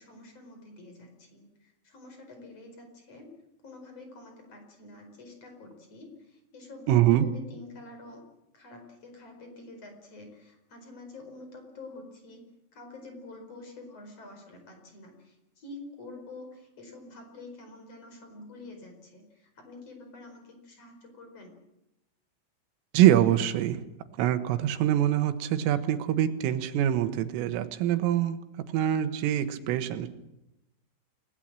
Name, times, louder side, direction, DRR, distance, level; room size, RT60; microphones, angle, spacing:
voice 1, 0.0-3.3 3.6-8.2 8.5-12.4 12.7-21.5, left 2 dB, 30° left, 4 dB, 5.3 m, -47 dB
voice 2, 6.9-7.3 22.9-23.8 24.2-28.4 28.7-30.1, right 12 dB, 80° right, 10 dB, 3.8 m, -24 dB
29.0 x 18.0 x 7.6 m, 0.90 s
omnidirectional pair, 5.8 m